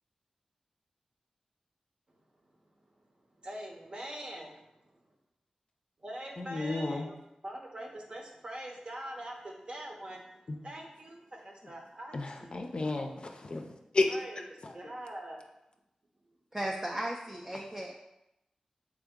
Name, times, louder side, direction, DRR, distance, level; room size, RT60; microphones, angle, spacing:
voice 1, 3.4-4.6 6.0-7.2 7.4-10.2 10.6-12.5 14.1-14.5 14.7-15.5, right 1 dB, 45° right, 1 dB, 0.8 m, -43 dB
voice 2, 6.4-7.1 10.5-10.6 12.1-13.7 13.9-14.2 14.6-14.7, left 2 dB, 45° left, 4 dB, 0.5 m, -32 dB
voice 3, 16.5-17.9, right 1 dB, 20° right, -1 dB, 0.4 m, -36 dB
3.5 x 3.4 x 3.6 m, 0.88 s
wide cardioid pair, 65°, 2 cm